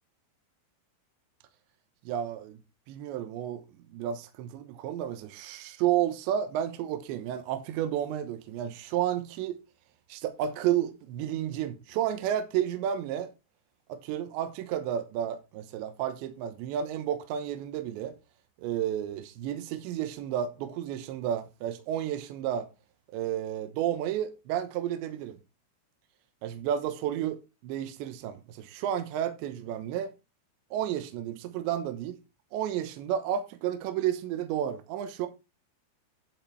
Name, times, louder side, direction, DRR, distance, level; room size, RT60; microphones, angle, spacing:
voice 1, 2.1-2.6 2.9-3.6 3.9-9.6 10.1-13.3 13.9-18.2 18.6-22.7 23.1-25.4 26.4-27.4 27.6-30.1 30.7-32.2 32.5-35.3, right 10 dB, 75° right, 3.0 m, -31 dB
11.0 x 5.7 x 4.4 m
omnidirectional pair, 5.6 m